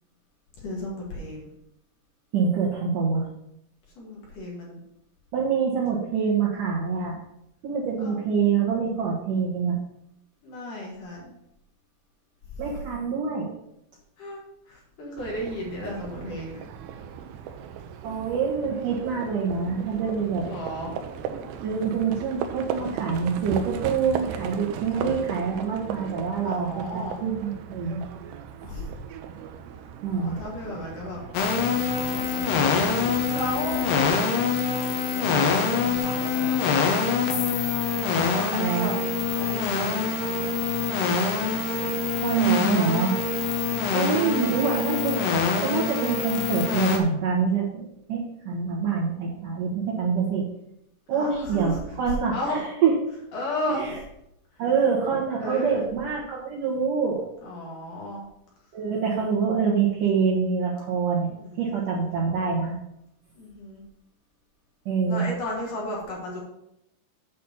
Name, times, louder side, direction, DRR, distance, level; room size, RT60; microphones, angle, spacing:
voice 1, 0.6-1.5 4.0-4.8 8.0-8.2 10.4-11.4 14.2-14.4 14.7-16.6 20.4-20.9 24.6-25.2 26.4-27.2 28.6-28.9 30.1-31.2 32.3-32.7 33.3-33.9 35.1-36.6 38.1-40.5 41.5-41.9 51.1-51.7 52.3-52.6 53.3-53.9 55.4-55.8 57.4-58.2 61.3-61.6 61.9-62.1 63.4-63.8 65.1-66.4, left 1 dB, 50° left, -3 dB, 3.0 m, -34 dB
voice 2, 2.3-3.3 5.3-7.2 7.6-9.8 12.6-13.5 18.0-20.5 21.6-28.0 30.0-30.4 38.6-38.9 42.2-43.2 43.9-45.2 45.6-50.5 51.1-53.0 53.7-54.0 54.6-57.3 58.7-61.3 61.6-62.8 64.9-65.3, right 6 dB, 65° right, -4 dB, 2.2 m, -25 dB
Livestock farm animals working animals, 15.2-34.2, right 8 dB, 85° right, 2.4 m, -37 dB
sound 1, 31.3-47.0, left 5 dB, 70° left, 2.8 m, -25 dB
8.5 x 4.2 x 7.1 m, 0.80 s
omnidirectional pair, 5.6 m